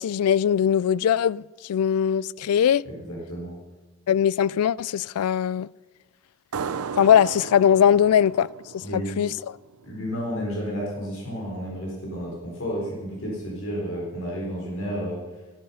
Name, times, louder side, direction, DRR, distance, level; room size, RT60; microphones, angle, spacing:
voice 1, 0.0-2.8 4.1-5.7 7.0-8.5 8.7-9.3, left 9 dB, 90° left, 0.3 m, -21 dB
voice 2, 2.9-3.6 8.8-9.1 9.8-15.2, equal, 70° left, 4.2 m, -31 dB
sound 1, 6.5-9.8, right 6 dB, 85° right, 0.5 m, -35 dB
14.0 x 13.5 x 5.6 m
head